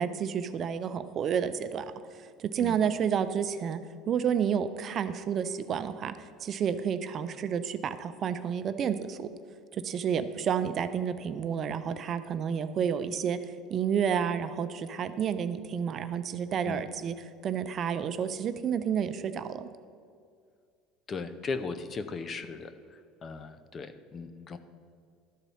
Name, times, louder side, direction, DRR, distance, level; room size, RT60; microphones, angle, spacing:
voice 1, 0.0-1.9 2.4-3.8 4.1-9.3 9.7-13.4 13.7-17.1 17.4-19.7, right 7 dB, 40° right, 11 dB, 0.4 m, -30 dB
voice 2, 21.1-22.7 23.2-24.6, left 4 dB, 30° left, 10 dB, 0.5 m, -37 dB
12.0 x 4.1 x 5.5 m, 2.2 s
supercardioid pair, 120°, 0 cm